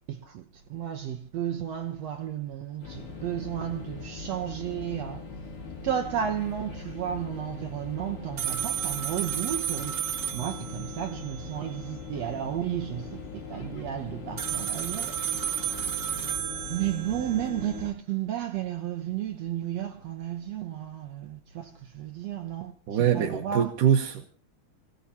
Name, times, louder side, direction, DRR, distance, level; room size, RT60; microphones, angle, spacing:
voice 1, 0.1-0.4 0.7-5.2 5.8-10.0 10.3-13.2 13.5-16.1 16.7-22.7 23.1-23.7, right 10 dB, 65° right, 1.9 m, -33 dB
sound 1, 2.8-17.9, left 5 dB, 80° left, 4.5 m, -41 dB
sound 2, 8.4-11.8 14.4-17.8, right 9 dB, 45° right, 1.6 m, -32 dB
voice 2, 22.9-24.3, right 9 dB, 85° right, 2.8 m, -23 dB
27.5 x 16.5 x 2.8 m
omnidirectional pair, 3.6 m